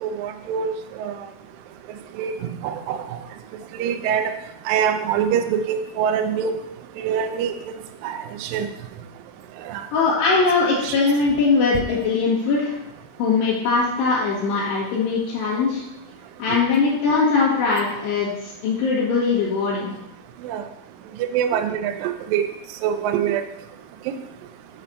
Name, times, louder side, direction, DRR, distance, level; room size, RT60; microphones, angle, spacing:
voice 1, 0.0-0.7 1.0-1.1 2.2-3.2 3.7-4.3 4.7-6.6 7.0-7.5 8.0-8.7 9.7-9.8 10.8-11.0 16.5-16.6 20.4-20.6 21.2-22.5 22.8-23.4, right 8 dB, 80° right, 7 dB, 2.0 m, -24 dB
voice 2, 9.9-12.8 13.2-15.8 16.4-19.9, left 4 dB, 85° left, -8 dB, 3.8 m, -21 dB
7.9 x 4.2 x 6.9 m, 0.87 s
omnidirectional pair, 4.7 m